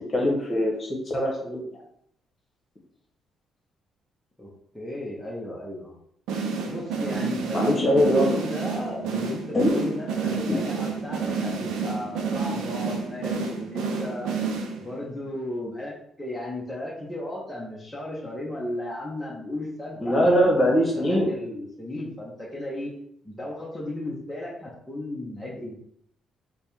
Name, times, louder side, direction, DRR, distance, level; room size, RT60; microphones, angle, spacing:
voice 1, 0.1-1.7 7.5-8.4 9.5-9.9 10.5-10.6 20.0-21.3, equal, 35° left, -1 dB, 1.3 m, -22 dB
voice 2, 4.4-5.9 6.7-14.3 14.8-22.9 23.2-25.8, left 1 dB, 10° left, -6 dB, 0.9 m, -35 dB
sound 1, 6.3-15.1, right 5 dB, 90° right, 0.5 m, -30 dB
3.2 x 2.3 x 4.3 m, 0.70 s
cardioid pair, 90°, 0 cm